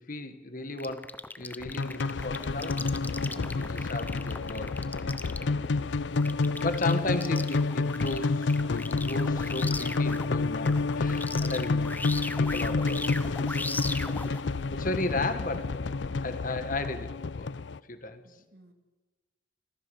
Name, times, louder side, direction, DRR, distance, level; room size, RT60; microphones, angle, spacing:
voice 1, 0.1-1.0 1.4-2.8 3.1-5.5 6.6-11.9 12.4-13.2 13.6-14.2 14.7-15.8 16.2-17.5 17.9-18.2, left 2 dB, 50° left, 9 dB, 1.5 m, -35 dB
sound 1, 0.8-10.3 10.7-14.4, left 2 dB, 10° left, 0.7 m, -38 dB
sound 2, 1.6-17.8, left 3 dB, 85° left, 0.6 m, -29 dB
voice 2, 6.4-6.8 12.3-12.6 13.8-14.9 16.1-16.4 18.2-18.7, right 2 dB, 60° right, 6 dB, 2.4 m, -57 dB
25.5 x 15.0 x 7.0 m, 1.2 s
head